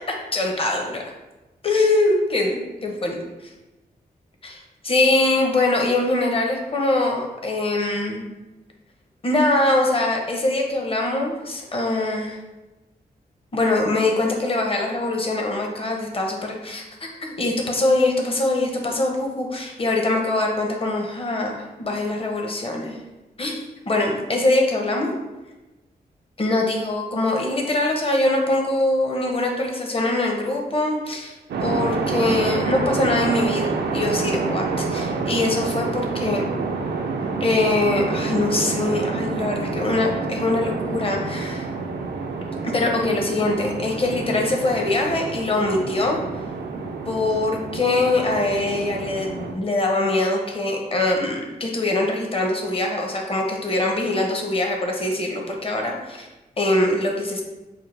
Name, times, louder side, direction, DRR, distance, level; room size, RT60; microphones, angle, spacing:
voice 1, 0.1-1.0 1.6-3.2 4.4-8.2 9.2-12.4 13.5-23.0 23.4-25.1 26.4-31.3 31.6-36.5 37.4-41.6 42.6-46.2 47.1-56.3 56.6-57.4, left 2 dB, 35° left, 1 dB, 0.8 m, -23 dB
sound 1, 31.5-49.5, right 4 dB, 85° right, 0.5 m, -28 dB
5.6 x 2.1 x 3.2 m, 1.1 s
cardioid pair, 70°, 17 cm